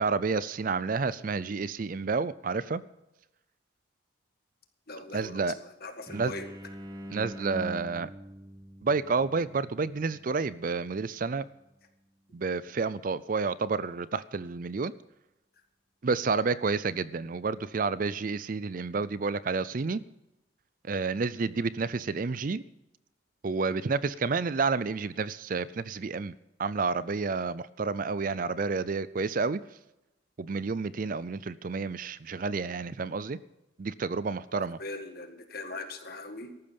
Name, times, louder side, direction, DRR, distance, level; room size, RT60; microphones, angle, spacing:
voice 1, 0.0-2.8 5.1-5.6 6.1-6.3 7.1-8.1 8.8-11.4 12.3-14.9 16.0-20.0 20.8-22.6 23.4-26.3 26.6-29.6 30.4-33.4 33.8-34.8, right 4 dB, 40° right, 18 dB, 0.4 m, -30 dB
voice 2, 4.9-6.5 34.5-36.5, left 2 dB, 50° left, 7 dB, 1.8 m, -40 dB
sound 1, 6.1-11.6, equal, 20° right, 1.7 m, -44 dB
14.0 x 12.5 x 5.3 m, 0.95 s
head